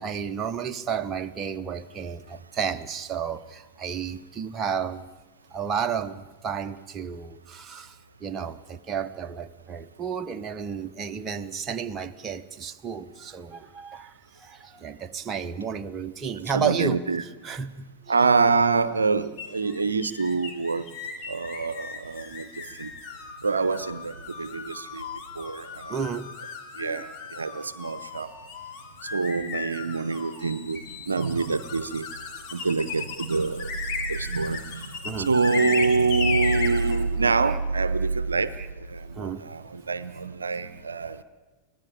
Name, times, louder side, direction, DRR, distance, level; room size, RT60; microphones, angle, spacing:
voice 1, 0.0-5.0 5.5-18.4 18.9-20.0 25.9-26.3 26.8-27.1 35.0-35.3 37.5-37.6 38.6-38.7 39.1-39.4 40.1-40.2 40.7-40.8, right 7 dB, 25° right, 1.0 m, -32 dB
voice 2, 16.5-17.2 18.1-20.8 21.3-22.9 23.4-25.1 25.4-25.9 26.8-28.3 29.1-32.1 32.5-33.7 34.1-38.5 38.9-41.2, right 4 dB, 75° right, 0.7 m, -26 dB
sound 1, 19.4-37.0, left 5 dB, 40° left, 2.6 m, -36 dB
24.5 x 17.0 x 8.7 m
figure-of-eight pair, 90°, 0 cm